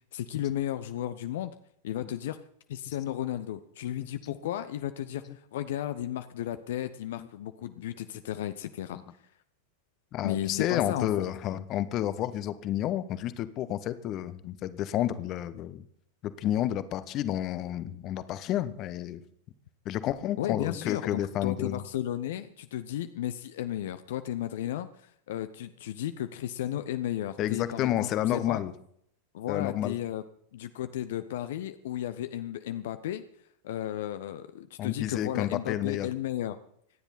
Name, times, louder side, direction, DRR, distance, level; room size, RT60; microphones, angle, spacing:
voice 1, 0.1-1.5 1.8-2.4 2.7-9.0 10.2-11.2 20.4-28.6 29.3-30.2 30.5-33.2 33.6-36.6, left 12 dB, 55° left, 10 dB, 0.9 m, -34 dB
voice 2, 2.9-3.2 4.0-4.1 7.2-7.3 8.9-9.0 10.1-15.8 16.2-19.2 19.8-21.8 27.4-28.7 29.5-29.9 34.8-36.1, left 12 dB, 35° left, 14 dB, 1.1 m, -30 dB
26.0 x 10.5 x 4.2 m, 0.68 s
figure-of-eight pair, 90°, 0 cm